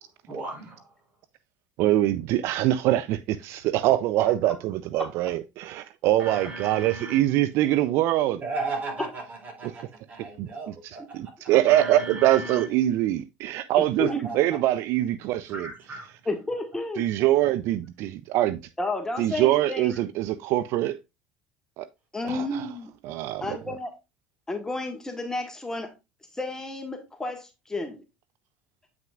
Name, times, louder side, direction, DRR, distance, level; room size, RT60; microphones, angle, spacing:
voice 1, 0.3-0.9 6.2-7.2 8.4-11.0 11.6-12.7 14.0-14.4 15.5-16.1, right 3 dB, 35° right, 3.9 m, -36 dB
voice 2, 1.8-8.4 9.6-9.7 10.4-10.5 11.1-14.1 14.3-15.7 17.0-18.6 19.2-21.0 21.8-21.9 22.2-22.6 23.1-23.4, right 14 dB, 60° right, 0.4 m, -23 dB
voice 3, 4.2-4.6 5.0-5.3 11.0-11.1 13.8-14.4 16.3-17.1 18.8-20.0 22.1-22.9 23.4-23.9 24.5-25.9 26.3-28.0, left 2 dB, 10° left, 1.6 m, -32 dB
8.9 x 6.0 x 2.4 m
supercardioid pair, 85°, 5 cm